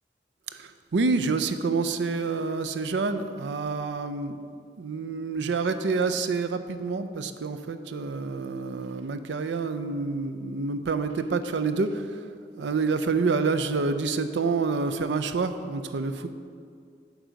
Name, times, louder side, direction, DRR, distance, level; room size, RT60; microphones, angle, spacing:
voice 1, 0.5-4.4 4.8-12.2 12.6-16.3, right 4 dB, 90° right, 10 dB, 0.5 m, -28 dB
9.5 x 3.9 x 6.3 m, 2.2 s
head